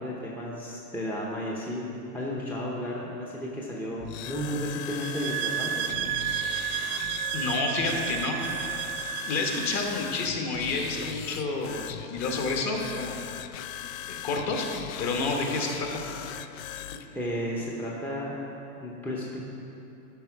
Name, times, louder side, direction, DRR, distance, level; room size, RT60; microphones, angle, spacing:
voice 1, 0.0-1.8 2.1-5.8 17.1-18.4 18.8-19.4, equal, 5° left, -4 dB, 0.7 m, -33 dB
sound 1, 4.0-17.1, left 11 dB, 60° left, 0.5 m, -39 dB
sound 2, 4.9-9.9, right 12 dB, 80° right, 0.7 m, -32 dB
voice 2, 7.3-8.4 9.3-13.1 14.1-14.7 15.0-15.9, left 3 dB, 35° left, 2 dB, 1.3 m, -29 dB
12.0 x 5.3 x 4.8 m, 2.9 s
hypercardioid pair, 125°, 48 cm